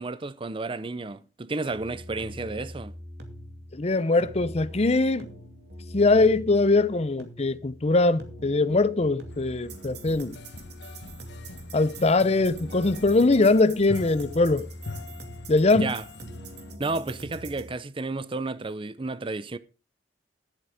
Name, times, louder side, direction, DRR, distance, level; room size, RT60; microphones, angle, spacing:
voice 1, 0.0-2.9 15.7-16.0 16.8-19.6, right 3 dB, 30° right, 0.6 m, -32 dB
sound 1, 1.7-17.7, equal, 65° right, 2.6 m, -43 dB
voice 2, 3.7-5.3 5.9-10.4 11.7-14.7 15.5-15.9, left 3 dB, 35° left, 0.7 m, -22 dB
sound 2, 9.3-16.7, left 3 dB, 70° left, 1.2 m, -43 dB
13.0 x 7.8 x 4.9 m
head